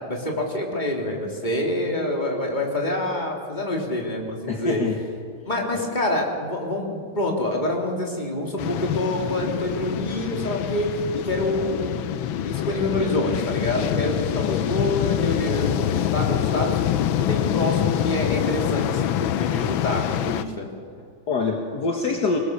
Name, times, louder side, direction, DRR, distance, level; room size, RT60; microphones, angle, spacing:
voice 1, 0.1-4.8 5.5-10.9 11.2-16.8 17.1-20.7, left 1 dB, 20° left, -1 dB, 3.6 m, -27 dB
voice 2, 4.5-5.0 5.7-5.9 14.4-14.7 21.0-22.4, left 4 dB, 55° left, 1 dB, 2.1 m, -25 dB
sound 1, 8.6-20.4, left 11 dB, 85° left, 1.6 m, -25 dB
24.0 x 20.0 x 6.9 m, 2.1 s
omnidirectional pair, 2.2 m